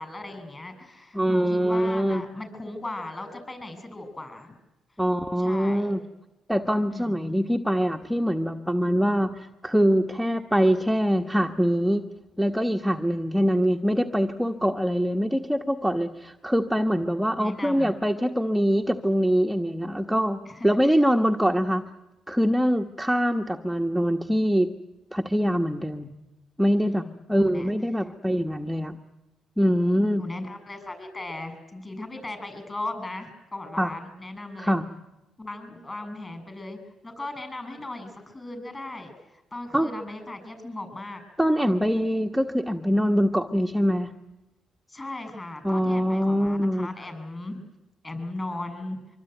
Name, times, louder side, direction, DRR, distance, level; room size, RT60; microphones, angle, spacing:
voice 1, 0.0-4.5 5.4-5.9 6.9-7.2 17.4-17.9 20.5-20.7 26.8-27.1 27.4-27.7 30.2-34.7 35.4-39.1 39.5-41.2 44.9-47.7 48.0-49.0, left 2 dB, 25° left, 9 dB, 7.5 m, -37 dB
voice 2, 1.1-2.2 5.0-6.0 6.5-12.0 12.4-21.9 22.3-24.7 25.1-26.1 26.6-27.0 27.3-28.9 29.6-30.3 33.8-33.9 34.6-34.8 39.7-39.9 41.4-44.1 45.6-46.9, equal, ahead, 3 dB, 1.4 m, -23 dB
25.0 x 24.0 x 9.3 m, 0.98 s
cardioid pair, 90°, 0 cm